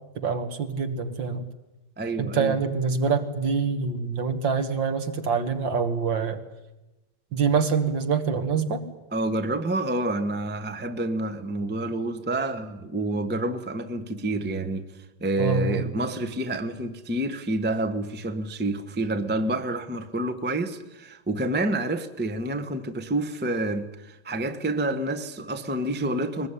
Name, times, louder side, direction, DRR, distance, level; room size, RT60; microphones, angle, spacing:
voice 1, 0.2-1.4 2.2-6.4 7.3-8.8 15.4-15.8, right 5 dB, 60° right, 2.4 m, -25 dB
voice 2, 2.0-2.6 9.1-26.5, right 2 dB, 5° right, 0.8 m, -28 dB
22.0 x 20.0 x 9.9 m
omnidirectional pair, 2.4 m